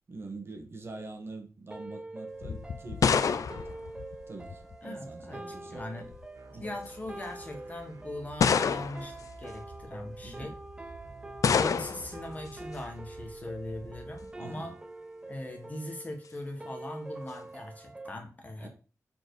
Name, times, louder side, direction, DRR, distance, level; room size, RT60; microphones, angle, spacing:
voice 1, 0.1-3.7 4.3-6.1 6.5-6.6 10.2-10.5 14.4-14.7 18.6-18.7, right 3 dB, 40° right, 1.6 m, -45 dB
sound 1, 1.7-18.1, right 2 dB, 15° right, 0.5 m, -45 dB
sound 2, 2.4-4.8 5.8-6.2 7.1-7.2 8.4-9.2 11.4-12.2, left 6 dB, 65° left, 0.4 m, -27 dB
voice 2, 4.8-6.1 6.5-10.5 11.5-14.7 15.3-18.7, left 1 dB, 25° left, 1.3 m, -40 dB
sound 3, 6.3-14.3, right 2 dB, 75° right, 1.5 m, -51 dB
7.3 x 4.5 x 4.7 m
wide cardioid pair, 160°, 6 cm